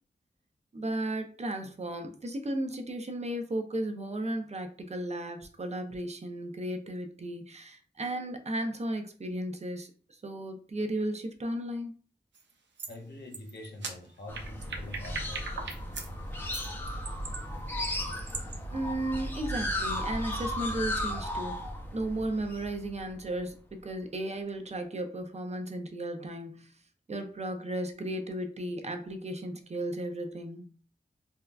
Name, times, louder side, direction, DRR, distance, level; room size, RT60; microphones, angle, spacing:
voice 1, 0.7-12.0 18.7-21.6 21.9-26.7 27.1-30.7, right 1 dB, 40° right, 0.5 m, -35 dB
sound 1, 12.3-12.5 12.8-12.9 13.3-16.1 16.5-18.5, right 4 dB, 85° right, 0.5 m, -39 dB
voice 2, 12.9-15.8, left 1 dB, 70° left, 0.7 m, -45 dB
sound 2, 14.3-23.4, left 1 dB, 10° left, 0.5 m, -35 dB
3.6 x 2.2 x 2.3 m
wide cardioid pair, 60°, 18 cm